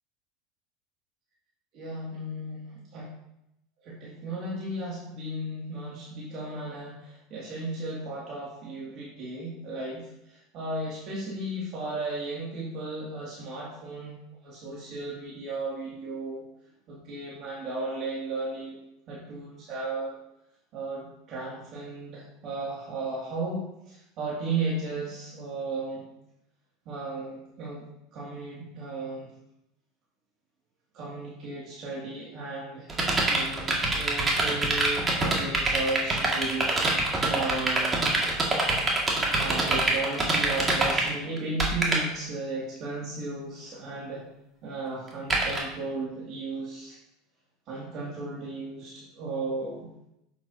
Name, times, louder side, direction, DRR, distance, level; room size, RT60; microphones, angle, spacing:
voice 1, 1.7-2.6 2.9-3.1 3.8-10.0 10.3-14.1 14.4-16.4 16.9-18.7 19.1-20.2 20.7-26.0 26.9-27.8 28.1-29.3 30.9-36.7 37.3-38.0 39.3-44.2 44.6-47.0 47.7-49.9, right 2 dB, 50° right, -6 dB, 2.4 m, -35 dB
sound 1, 32.9-41.1 41.4-42.0 45.3-45.6, right 2 dB, 25° right, 2.1 m, -24 dB
7.3 x 7.3 x 2.8 m, 0.83 s
hypercardioid pair, 85°, 0 cm